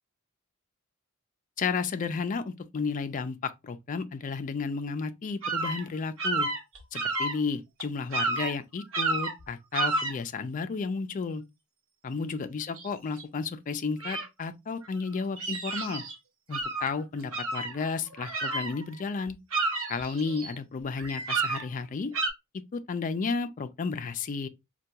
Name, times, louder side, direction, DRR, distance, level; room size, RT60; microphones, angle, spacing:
voice 1, 1.6-6.5 6.9-11.4 12.0-16.0 16.5-19.4 19.9-22.1 22.7-24.5, left 4 dB, 35° left, 0.4 m, -32 dB
sound 1, 5.4-5.8 6.2-7.4 7.8-7.9 8.1-8.5 8.9-9.4 9.7-10.1 12.8-12.9 13.2-13.3 14.0-14.3 15.0-16.1 16.5-16.9 17.3-19.0 19.3-20.6 21.0-21.6 22.1-22.3, right 3 dB, 70° right, 1.1 m, -30 dB
4.4 x 2.2 x 2.7 m
head